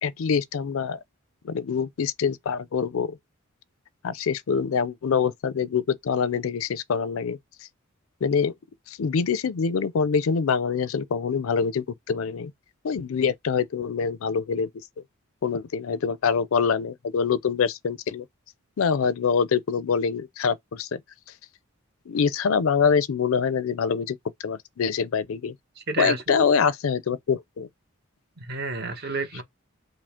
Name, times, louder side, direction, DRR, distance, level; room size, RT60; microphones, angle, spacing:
voice 1, 0.0-1.0 1.4-3.2 4.0-7.4 8.2-8.5 8.9-12.5 12.8-14.7 15.4-18.3 18.8-21.0 22.1-24.2 24.4-25.5 26.0-27.7, left 6 dB, 75° left, 0.4 m, -25 dB
voice 2, 25.8-26.4 28.4-29.4, right 3 dB, 50° right, 0.9 m, -30 dB
5.0 x 2.0 x 3.5 m
head